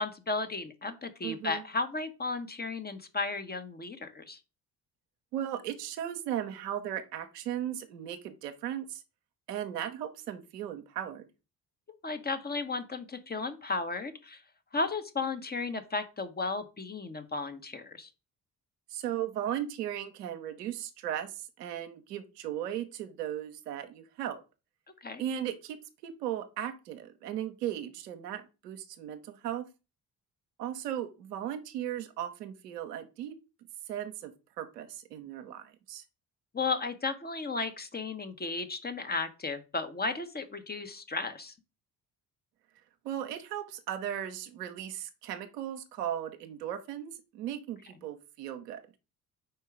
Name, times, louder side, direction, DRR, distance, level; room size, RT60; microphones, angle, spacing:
voice 1, 0.0-4.4 12.0-14.4 14.7-18.1 25.0-25.2 36.5-41.5, left 3 dB, 20° left, 8 dB, 1.0 m, -34 dB
voice 2, 1.2-1.6 5.3-9.0 9.5-11.3 18.9-24.4 25.2-25.8 26.0-29.7 30.6-33.3 33.9-36.0 43.0-48.8, right 10 dB, 75° right, 7 dB, 0.9 m, -37 dB
4.7 x 4.5 x 4.8 m, 0.30 s
figure-of-eight pair, 45°, 48 cm